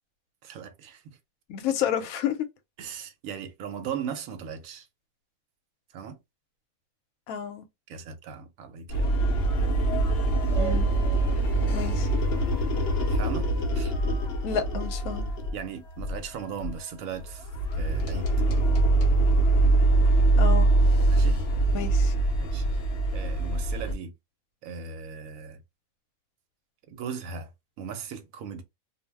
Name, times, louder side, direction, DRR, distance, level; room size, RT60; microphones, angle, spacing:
voice 1, 0.4-1.2 2.8-4.9 5.9-6.2 7.9-9.1 13.1-13.9 15.5-17.5 17.8-18.3 21.1-21.4 22.4-22.8 23.1-24.2 24.6-25.6 26.9-27.5 27.8-28.6, right 7 dB, 75° right, 1.0 m, -38 dB
voice 2, 1.5-2.4 7.3-7.6 10.6-10.9 11.7-12.1 14.4-15.3 20.4-20.7 21.7-22.1, left 8 dB, 85° left, 1.0 m, -30 dB
sound 1, 8.9-15.6 16.0-16.3 16.6-16.7 17.2-23.9, right 2 dB, 60° left, 0.7 m, -23 dB
sound 2, 9.4-17.9, right 2 dB, 5° left, 0.4 m, -44 dB
2.4 x 2.0 x 3.3 m
omnidirectional pair, 1.5 m